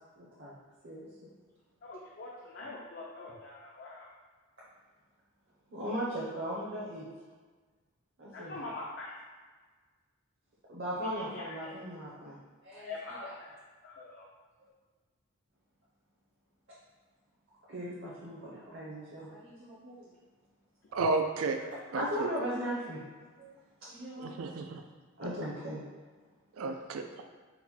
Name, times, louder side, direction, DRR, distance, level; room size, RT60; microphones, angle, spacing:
voice 1, 0.2-0.5 0.8-1.3 5.7-7.0 8.2-8.7 10.7-12.4 12.6-13.5 17.7-20.1 21.9-23.0 23.4-24.4 25.2-25.8, equal, 55° right, -8 dB, 0.8 m, -38 dB
voice 2, 1.8-4.1 8.3-9.1 11.0-11.5 12.8-13.5 13.8-14.3, left 2 dB, 50° left, -3 dB, 0.4 m, -43 dB
voice 3, 20.9-21.6 21.9-22.3 24.2-24.8 26.6-27.0, right 3 dB, 85° right, 6 dB, 0.4 m, -32 dB
4.0 x 2.2 x 4.3 m, 1.4 s
head